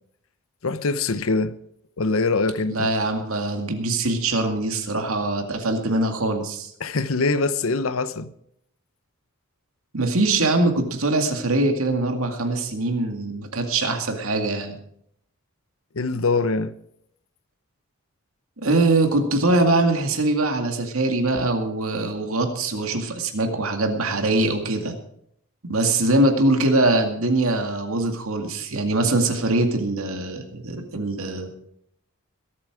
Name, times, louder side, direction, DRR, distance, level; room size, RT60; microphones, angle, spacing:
voice 1, 0.6-1.5 2.0-2.9 6.8-8.3 15.9-16.7, left 3 dB, 70° left, 0.8 m, -23 dB
voice 2, 2.7-6.7 9.9-14.8 18.6-25.0 25.6-31.5, right 2 dB, 75° right, 2.2 m, -22 dB
21.5 x 8.7 x 4.8 m
head